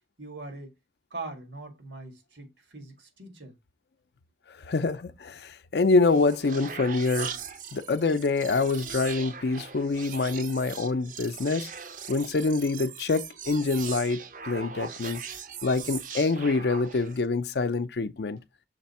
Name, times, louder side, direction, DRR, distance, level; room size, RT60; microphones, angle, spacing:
voice 1, 0.2-0.7 1.1-3.6, right 3 dB, 85° right, 1.9 m, -41 dB
voice 2, 4.5-7.3 7.7-11.7 12.1-15.2 15.6-18.4, left 3 dB, 65° left, 0.5 m, -26 dB
sound 1, 5.8-17.3, right 7 dB, 45° right, 0.6 m, -40 dB
6.5 x 3.4 x 4.2 m
head